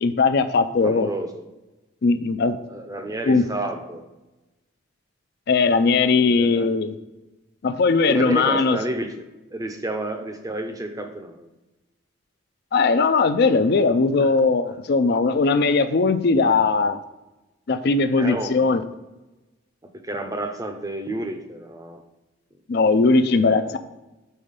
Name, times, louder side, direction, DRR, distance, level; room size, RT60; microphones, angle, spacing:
voice 1, 0.0-1.1 2.0-2.6 3.3-3.4 5.5-6.9 7.6-8.8 12.7-17.0 17.7-18.8 22.7-23.8, left 4 dB, 50° left, 11 dB, 0.4 m, -19 dB
voice 2, 0.8-1.4 2.7-4.0 6.4-6.7 8.1-9.2 9.5-11.5 14.2-14.4 14.7-14.8 18.2-18.8 20.0-22.0 23.0-23.7, right 1 dB, 15° right, 6 dB, 0.5 m, -31 dB
5.6 x 4.4 x 4.9 m, 1.1 s
head